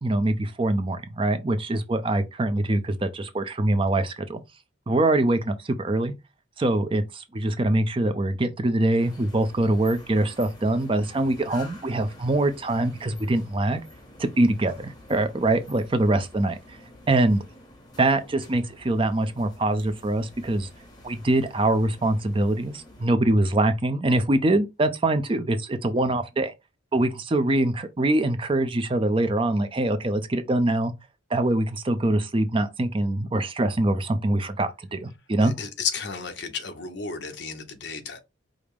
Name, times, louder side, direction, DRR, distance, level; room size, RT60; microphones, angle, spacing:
voice 1, 0.0-4.4 4.9-6.1 6.6-13.8 14.2-16.8 17.1-17.4 18.0-20.7 21.0-26.5 26.9-30.9 31.3-35.5, right 1 dB, 25° right, 0.5 m, -24 dB
sound 1, 9.0-23.1, left 1 dB, 20° left, 1.3 m, -49 dB
voice 2, 35.4-38.2, left 5 dB, 60° left, 0.9 m, -33 dB
5.1 x 2.1 x 4.8 m
head